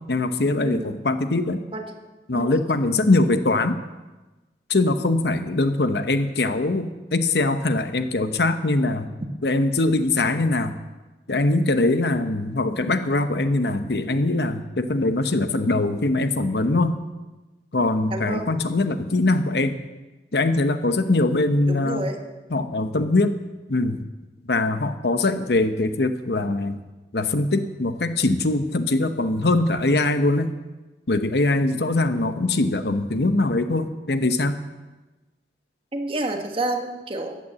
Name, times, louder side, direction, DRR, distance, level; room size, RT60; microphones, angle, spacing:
voice 1, 0.1-1.6 2.3-3.8 4.7-9.1 9.4-10.7 11.3-17.0 17.7-19.8 20.3-22.1 22.5-23.4 23.7-24.1 24.5-26.8 27.1-30.5 31.1-34.6, left 2 dB, 65° left, 9 dB, 0.9 m, -22 dB
voice 2, 0.6-1.0 1.7-1.9 2.3-2.6 18.1-18.5 21.7-22.2 35.9-37.4, right 2 dB, 30° right, 4 dB, 1.5 m, -29 dB
14.5 x 9.3 x 7.5 m, 1.2 s
head